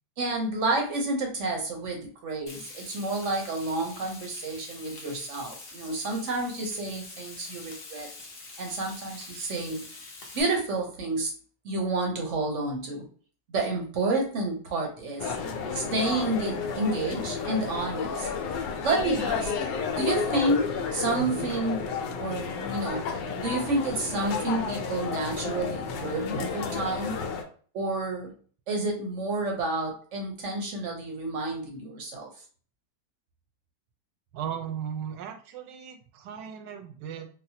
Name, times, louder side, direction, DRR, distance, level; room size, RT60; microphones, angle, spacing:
voice 1, 0.2-8.1 8.6-9.8 10.3-11.3 11.6-13.1 13.5-15.4 15.7-18.3 18.8-21.8 22.2-23.0 23.4-27.2 27.7-28.3 28.7-32.3, right 2 dB, 60° right, 1 dB, 0.9 m, -30 dB
Frying (food), 2.5-10.4, left 3 dB, 55° left, 1.0 m, -45 dB
sound 1, 15.2-27.4, left 5 dB, 85° left, 1.2 m, -32 dB
voice 2, 21.1-21.5 34.3-37.3, right 8 dB, 80° right, 6 dB, 1.2 m, -37 dB
4.0 x 2.0 x 2.7 m, 0.44 s
omnidirectional pair, 1.9 m